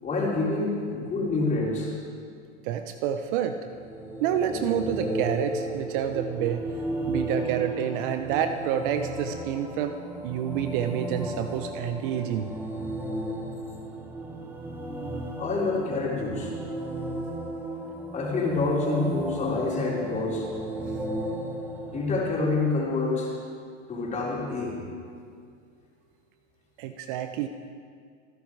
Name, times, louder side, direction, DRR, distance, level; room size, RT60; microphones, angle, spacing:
voice 1, 0.0-1.9 15.4-16.5 18.1-20.5 21.8-23.3 23.9-24.8, left 3 dB, 20° left, -4 dB, 4.2 m, -27 dB
voice 2, 2.6-3.6 4.2-6.6 7.1-12.5 26.8-27.5, right 9 dB, 45° right, 8 dB, 0.8 m, -28 dB
sound 1, 3.6-22.4, right 1 dB, 5° right, 1.3 m, -34 dB
27.0 x 10.5 x 4.8 m, 2.2 s
hypercardioid pair, 135°, 36 cm